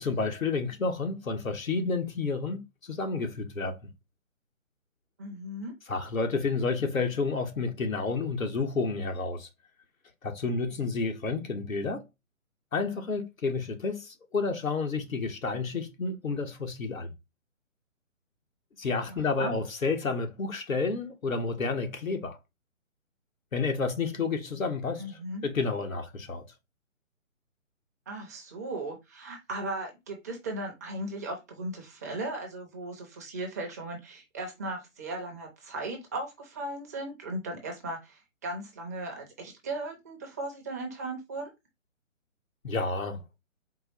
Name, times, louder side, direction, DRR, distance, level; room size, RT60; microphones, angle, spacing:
voice 1, 0.0-3.9 5.9-9.5 10.2-12.1 12.7-17.1 18.8-22.4 23.5-26.5 42.6-43.2, left 4 dB, 85° left, 1.3 m, -30 dB
voice 2, 5.2-5.7 19.1-19.6 25.0-25.4 28.1-41.5, right 2 dB, 15° right, 0.6 m, -37 dB
4.5 x 2.2 x 4.1 m
figure-of-eight pair, 150°, 40 cm